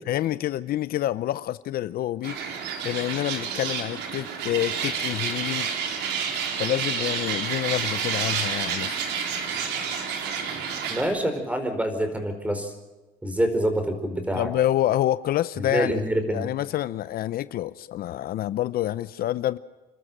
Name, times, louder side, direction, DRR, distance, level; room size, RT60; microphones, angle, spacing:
voice 1, 0.1-2.4 2.8-5.7 6.6-9.0 14.3-15.9 16.3-19.6, left 13 dB, 65° left, 16 dB, 0.6 m, -27 dB
sound 1, 2.2-11.0, right 6 dB, 85° right, 3.8 m, -29 dB
voice 2, 10.9-12.7 13.2-14.5 15.6-16.5, right 1 dB, 10° right, 7 dB, 4.6 m, -26 dB
28.5 x 12.5 x 9.1 m, 1.2 s
cardioid pair, 110°, 17 cm